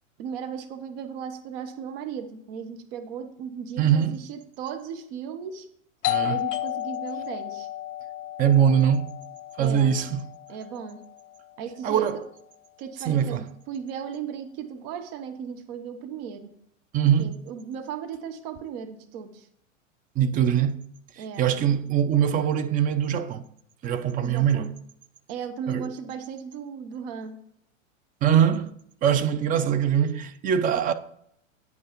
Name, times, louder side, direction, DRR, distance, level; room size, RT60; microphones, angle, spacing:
voice 1, 0.2-5.7 6.2-7.7 9.6-9.9 10.5-11.0 11.6-12.2 12.8-16.5 17.2-19.5 21.2-21.5 24.2-24.7 25.3-27.4, right 7 dB, 45° right, 1.1 m, -36 dB
voice 2, 3.8-4.2 6.1-6.4 8.4-9.1 9.6-10.3 11.8-12.2 13.1-13.4 16.9-17.3 20.2-20.8 21.4-23.4 23.8-24.7 25.7-25.9 28.2-28.7 29.0-30.9, right 9 dB, 20° right, 0.5 m, -22 dB
Doorbell, 6.0-11.4, left 14 dB, 65° left, 0.6 m, -33 dB
9.2 x 5.4 x 5.2 m
hypercardioid pair, 100°, 39 cm